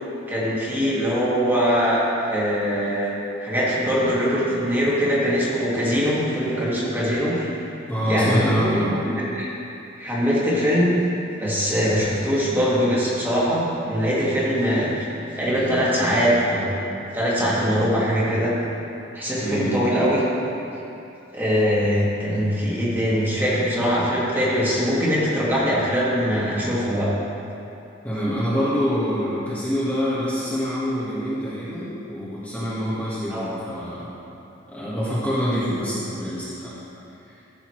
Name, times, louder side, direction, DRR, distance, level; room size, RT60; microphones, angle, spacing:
voice 1, 0.3-2.0 2.3-3.1 3.4-7.5 8.0-9.5 10.0-10.9 11.4-14.9 15.4-16.8 17.1-18.5 19.1-20.2 21.3-27.1 33.3-33.5, equal, 10° right, -8 dB, 2.0 m, -22 dB
voice 2, 7.9-9.0 19.4-19.8 28.0-34.1 34.7-36.7, equal, 10° left, -11 dB, 1.5 m, -25 dB
14.0 x 6.8 x 3.2 m, 2.8 s
head